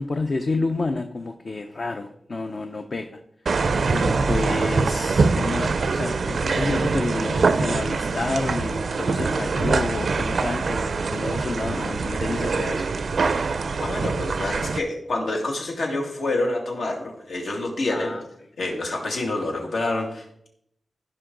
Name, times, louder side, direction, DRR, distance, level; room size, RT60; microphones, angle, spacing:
voice 1, 0.0-3.2 3.5-12.9 17.9-18.3, left 3 dB, 45° left, 6 dB, 0.6 m, -29 dB
sound 1, 3.5-14.8, right 4 dB, 65° right, 0.5 m, -24 dB
voice 2, 13.8-18.1 18.6-20.5, left 2 dB, 85° left, 0 dB, 2.2 m, -27 dB
15.5 x 5.4 x 3.8 m, 0.73 s
wide cardioid pair, 140°, 0 cm